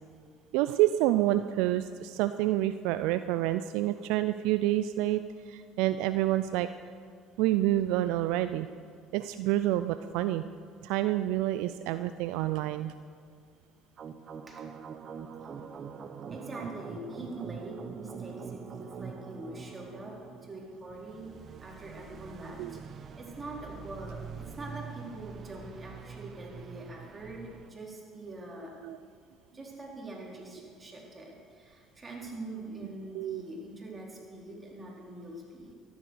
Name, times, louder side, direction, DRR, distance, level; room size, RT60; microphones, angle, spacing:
voice 1, 0.5-6.7 7.4-8.7 9.1-10.4 10.8-12.9 22.6-22.8 28.8-29.0 33.1-33.4, right 14 dB, 75° right, 11 dB, 0.4 m, -28 dB
sound 1, 14.0-27.7, right 6 dB, 50° right, 1.0 m, -44 dB
voice 2, 16.3-22.8 23.2-28.8 29.5-35.7, right 2 dB, 30° right, -2 dB, 4.3 m, -44 dB
13.5 x 11.0 x 6.6 m, 2.1 s
hypercardioid pair, 70°, 0 cm